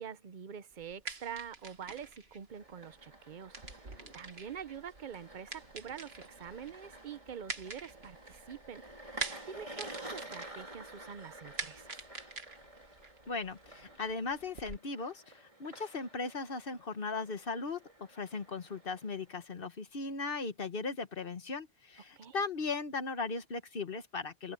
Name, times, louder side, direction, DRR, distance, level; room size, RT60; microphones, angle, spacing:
voice 1, 0.0-3.6 3.8-8.8 9.5-12.0 22.2-22.4, right 7 dB, 55° right, 0.8 m, -45 dB
sound 1, 0.7-14.8, right 4 dB, 80° right, 2.3 m, -46 dB
sound 2, 2.5-19.4, right 1 dB, 35° right, 3.8 m, -51 dB
voice 2, 13.3-24.5, left 4 dB, 60° left, 1.5 m, -38 dB
open air
omnidirectional pair, 1.0 m